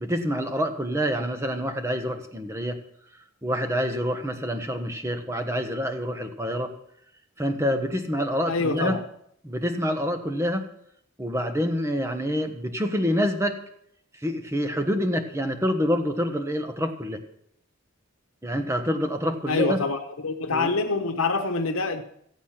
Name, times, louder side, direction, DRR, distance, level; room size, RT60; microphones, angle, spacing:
voice 1, 0.0-2.8 3.4-6.7 7.4-9.0 9.4-10.7 11.2-13.6 14.2-17.2 18.4-19.8 20.5-20.7, equal, 15° right, 1.1 m, -27 dB
voice 2, 8.5-9.0 19.5-20.0 20.2-22.0, left 3 dB, 80° left, 1.1 m, -25 dB
15.0 x 8.2 x 5.8 m
head